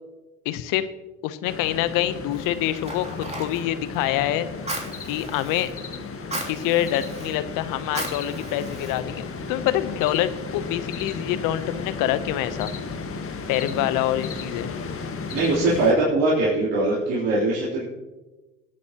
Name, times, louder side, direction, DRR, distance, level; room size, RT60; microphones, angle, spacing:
voice 1, 0.4-0.9 1.2-4.5 5.1-5.7 6.5-12.7 13.5-14.7, left 13 dB, 60° left, 13 dB, 0.9 m, -26 dB
sound 1, 1.4-15.9, left 4 dB, 40° left, 1.7 m, -34 dB
Fire, 2.3-9.5, right 1 dB, 20° right, 3.0 m, -37 dB
voice 2, 15.3-17.8, right 2 dB, 60° right, -7 dB, 3.8 m, -21 dB
21.0 x 8.4 x 3.0 m, 1.1 s
hypercardioid pair, 70°, 36 cm